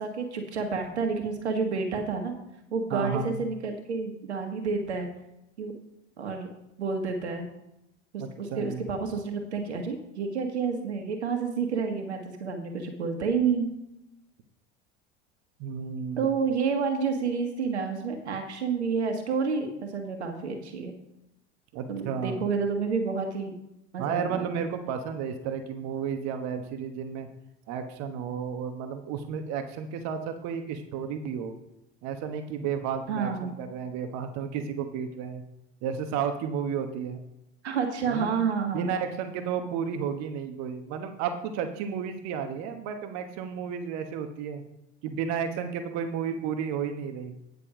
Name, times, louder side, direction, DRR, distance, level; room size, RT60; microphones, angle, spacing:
voice 1, 0.0-2.3 2.7-5.1 5.6-5.7 6.2-6.5 6.8-7.5 8.1-13.7 16.2-20.9 21.9-23.6 23.9-24.6 33.1-33.6 37.6-38.9, right 5 dB, 85° right, 4 dB, 1.6 m, -29 dB
voice 2, 2.9-3.4 8.2-8.8 15.6-16.3 21.7-22.4 24.0-27.3 27.7-31.6 32.0-35.4 35.8-37.2 38.1-38.4 38.7-44.6 45.0-47.3, right 7 dB, 55° right, 7 dB, 1.2 m, -32 dB
10.0 x 6.8 x 5.0 m, 0.87 s
hypercardioid pair, 80°, 33 cm